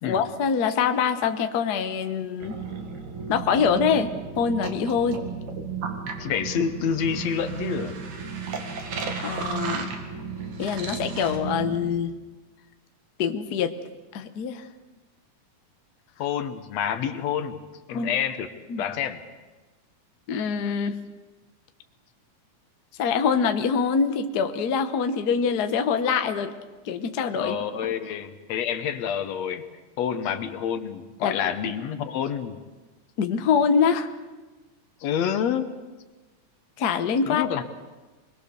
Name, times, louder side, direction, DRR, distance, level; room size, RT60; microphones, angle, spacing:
voice 1, 0.0-2.5 3.3-5.2 9.2-9.9 10.6-12.1 13.2-13.7 14.1-14.6 17.9-18.1 18.7-18.9 20.3-21.0 23.0-26.5 26.8-27.6 31.2-31.5 33.2-34.1 36.8-37.6, left 6 dB, 80° left, 8 dB, 0.8 m, -24 dB
sound 1, 2.4-11.9, right 5 dB, 70° right, 3.3 m, -34 dB
voice 2, 6.2-8.0 16.2-17.6 17.9-18.5 18.8-19.2 27.3-29.6 30.0-32.6 35.0-35.8 37.2-37.6, left 8 dB, 65° left, 10 dB, 2.2 m, -28 dB
25.0 x 21.0 x 6.9 m, 1.2 s
omnidirectional pair, 3.6 m